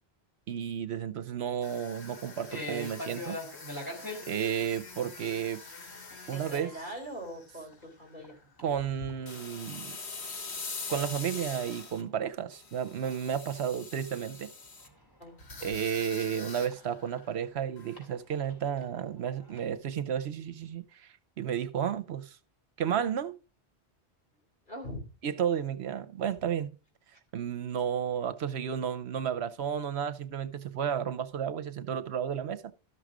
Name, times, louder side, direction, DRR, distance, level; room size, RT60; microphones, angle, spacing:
voice 1, 0.5-3.4 4.3-5.6 6.3-6.7 8.6-9.9 10.9-14.5 15.6-21.1 21.4-22.4 22.8-23.3 25.2-26.7 27.3-32.6, right 8 dB, 75° right, 1.0 m, -32 dB
sound 1, 1.6-7.7 8.1-8.4 9.3-12.0 12.5-14.9 15.4-17.4 17.8-18.0, left 4 dB, 75° left, 1.7 m, -44 dB
sound 2, 2.5-4.2 5.3-5.7 5.9-6.2 6.7-6.8 7.2-7.3 7.6-8.3 8.6-9.9 10.2-13.5 13.9-17.3 17.7-19.7, left 1 dB, 20° left, 3.5 m, -44 dB
voice 2, 6.3-8.4 9.0-9.1 15.2-15.8 24.7-25.0, equal, 45° left, 4.0 m, -42 dB
13.0 x 6.3 x 4.9 m
omnidirectional pair, 1.1 m